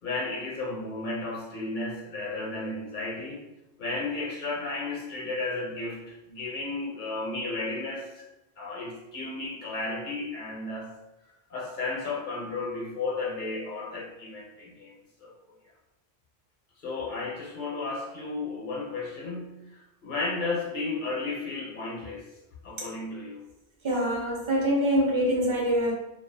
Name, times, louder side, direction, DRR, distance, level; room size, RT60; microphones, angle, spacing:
voice 1, 0.0-3.5 3.8-8.2 8.6-10.9 11.5-15.3 16.8-19.5 20.0-22.3 22.6-23.4, left 3 dB, 55° left, -4 dB, 0.8 m, -33 dB
voice 2, 23.8-25.9, equal, 35° right, -4 dB, 0.6 m, -24 dB
2.4 x 2.3 x 2.5 m, 0.94 s
omnidirectional pair, 1.1 m